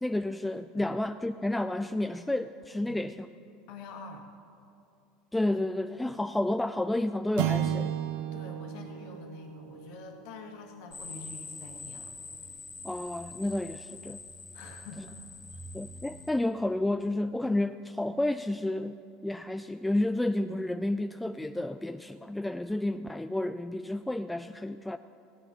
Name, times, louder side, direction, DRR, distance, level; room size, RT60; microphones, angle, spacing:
voice 1, 0.0-3.3 5.3-7.9 12.8-14.2 15.7-19.0 19.2-25.0, left 1 dB, 5° left, 10 dB, 0.3 m, -31 dB
voice 2, 3.7-4.3 8.3-12.1 14.5-15.2 15.5-15.7, left 4 dB, 65° left, 3 dB, 1.7 m, -46 dB
sound 1, 7.4-11.8, right 10 dB, 70° right, 0.6 m, -34 dB
sound 2, 10.9-16.3, left 3 dB, 25° left, 1.8 m, -45 dB
15.0 x 9.7 x 5.8 m, 2.7 s
hypercardioid pair, 85°, 0 cm